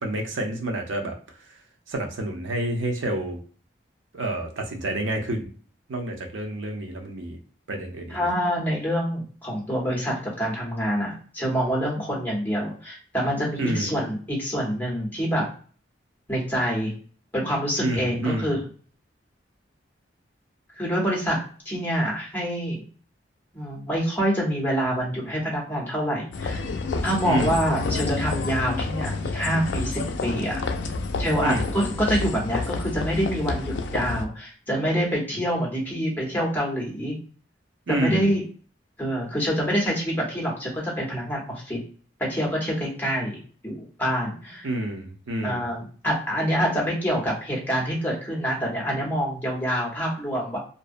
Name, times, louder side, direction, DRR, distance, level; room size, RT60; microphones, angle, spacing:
voice 1, 0.0-1.2 1.9-3.4 4.1-5.4 5.9-7.4 7.7-8.3 13.6-13.9 17.8-18.5 27.2-27.6 31.4-31.6 37.9-38.3 44.6-45.6, right 1 dB, 90° right, 3 dB, 0.6 m, -28 dB
voice 2, 8.1-15.5 16.3-16.9 17.3-18.6 20.8-21.4 21.6-22.8 23.5-26.6 27.0-30.6 31.2-37.1 37.9-38.4 39.0-41.8 42.3-44.7 45.4-50.6, equal, 10° left, -3 dB, 0.8 m, -26 dB
sound 1, 26.3-34.2, left 3 dB, 70° left, 0.3 m, -29 dB
2.6 x 2.0 x 2.5 m, 0.42 s
head